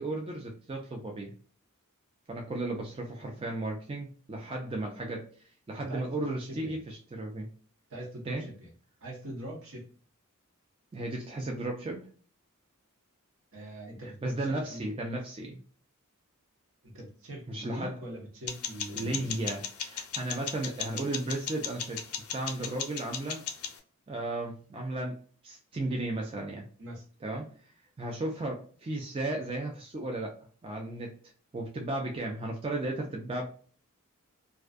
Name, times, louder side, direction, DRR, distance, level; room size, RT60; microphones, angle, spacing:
voice 1, 0.0-1.3 2.3-5.3 5.7-7.5 8.3-8.5 10.9-12.1 14.2-15.6 17.5-18.0 18.9-23.4 24.1-25.2 25.4-26.6 27.2-31.2 31.5-33.5, right 2 dB, 25° right, 0 dB, 0.4 m, -35 dB
voice 2, 5.8-6.8 7.9-8.7 9.0-9.8 13.5-14.9 16.8-19.4 26.8-27.0, right 1 dB, 65° right, 0 dB, 1.0 m, -43 dB
sound 1, 18.5-23.8, left 8 dB, 85° left, 0.5 m, -37 dB
2.5 x 2.2 x 2.3 m, 0.43 s
head